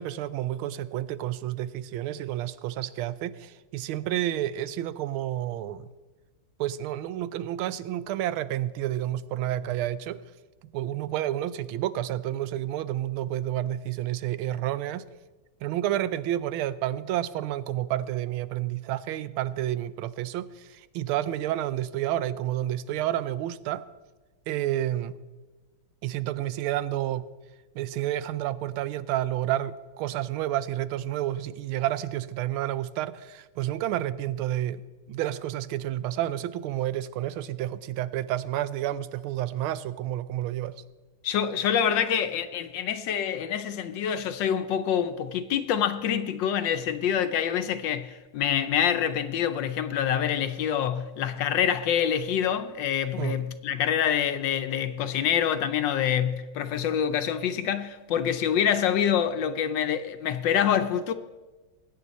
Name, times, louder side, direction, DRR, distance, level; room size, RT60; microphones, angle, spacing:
voice 1, 0.0-5.9 6.6-10.2 10.6-15.1 15.6-23.9 24.5-25.2 26.0-27.3 27.7-34.8 35.1-40.8 53.2-53.4, right 13 dB, 85° right, 1.4 m, -30 dB
voice 2, 41.2-61.1, left 9 dB, 70° left, 1.2 m, -26 dB
21.0 x 9.2 x 4.1 m
omnidirectional pair, 2.3 m